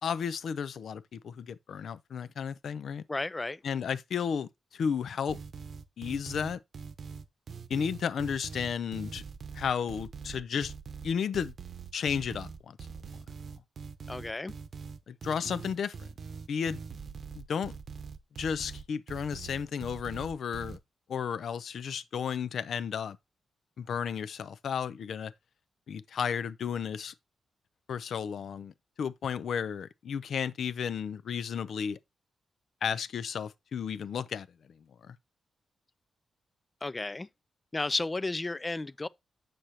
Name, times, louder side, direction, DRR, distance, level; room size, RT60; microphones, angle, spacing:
voice 1, 0.0-3.0 3.6-5.4 6.0-6.6 7.7-9.2 9.5-10.7 11.0-11.5 11.9-12.8 15.1-16.1 16.5-16.8 17.3-17.8 18.4-20.8 21.1-23.2 23.8-25.3 25.9-27.1 27.9-28.7 29.0-32.0 32.8-34.5 35.1-35.2, left 7 dB, 75° left, 0.5 m, -33 dB
voice 2, 3.1-3.6 14.1-14.5 36.8-37.3 37.7-39.1, left 2 dB, 20° left, 0.3 m, -33 dB
sound 1, 5.3-20.8, right 5 dB, 60° right, 0.8 m, -43 dB
7.7 x 6.5 x 2.8 m
cardioid pair, 110°, 0 cm